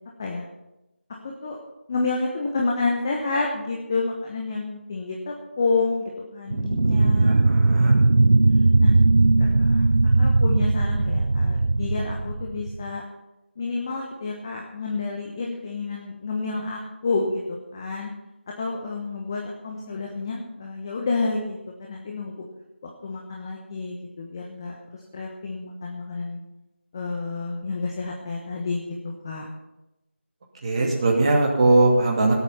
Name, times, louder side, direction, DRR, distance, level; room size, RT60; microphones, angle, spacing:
voice 1, 1.2-1.6 1.9-7.4 7.9-8.1 8.8-8.9 9.4-13.0 13.6-18.1 18.6-22.4 22.8-26.4 26.9-28.8 29.2-29.5, left 3 dB, 20° left, -1 dB, 1.1 m, -29 dB
sound 1, 6.5-13.0, right 2 dB, 80° right, 0.3 m, -19 dB
voice 2, 6.8-8.0 30.6-32.3, right 2 dB, 25° right, -1 dB, 2.3 m, -21 dB
17.5 x 8.4 x 5.6 m, 0.94 s
figure-of-eight pair, 165°, 7 cm